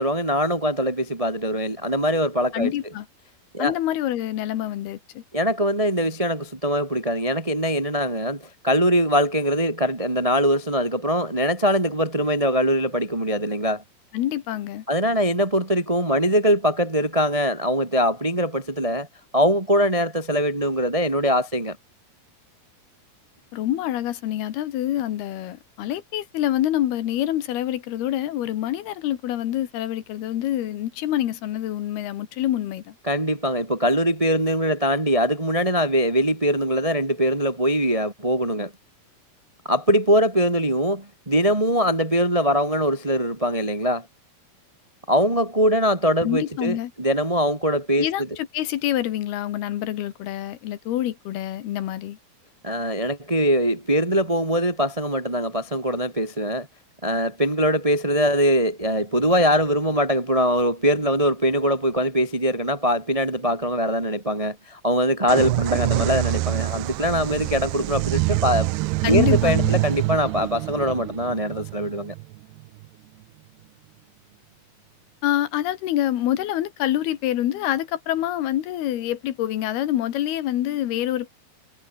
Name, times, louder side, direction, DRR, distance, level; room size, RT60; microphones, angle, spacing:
voice 1, 0.0-2.7 3.5-3.7 5.3-13.8 14.9-19.1 19.3-21.8 33.0-38.7 39.6-44.0 45.1-48.3 52.6-56.7 57.0-68.7 69.1-72.1, equal, 35° right, 0.5 m, -22 dB
voice 2, 2.5-3.1 3.6-5.2 14.1-14.9 23.5-33.0 46.2-46.9 48.0-52.2 69.0-69.8 75.2-81.3, left 12 dB, 80° left, 3.5 m, -26 dB
sound 1, 65.3-72.9, right 21 dB, 90° right, 2.7 m, -25 dB
omnidirectional pair, 4.5 m